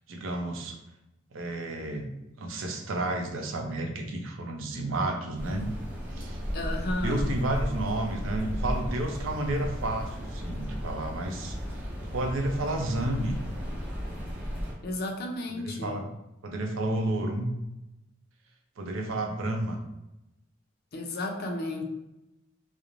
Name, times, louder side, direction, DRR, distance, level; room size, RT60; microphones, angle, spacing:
voice 1, 0.1-0.8 1.3-2.1 2.4-5.7 6.1-6.4 7.0-13.4 15.5-16.1 16.4-17.5 18.8-19.8, right 1 dB, 80° right, 3 dB, 0.5 m, -31 dB
sound 1, 5.4-14.7, equal, 10° right, 0.6 m, -34 dB
voice 2, 6.5-7.4 14.8-16.0 20.9-21.8, left 2 dB, 50° left, 3 dB, 0.4 m, -33 dB
2.4 x 2.0 x 2.9 m, 0.92 s
head